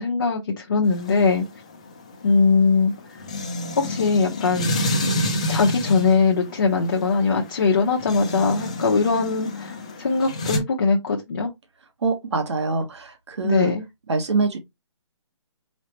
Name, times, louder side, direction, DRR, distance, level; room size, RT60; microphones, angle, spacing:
voice 1, 0.0-1.4 2.2-2.9 3.8-4.8 5.5-11.5 13.4-13.8, left 4 dB, 40° left, 0.9 m, -21 dB
sound 1, 0.9-10.6, left 1 dB, 15° left, 0.3 m, -29 dB
voice 2, 12.0-13.7 14.1-14.6, right 4 dB, 65° right, 1.2 m, -24 dB
4.9 x 3.2 x 2.9 m
hypercardioid pair, 170°, 16 cm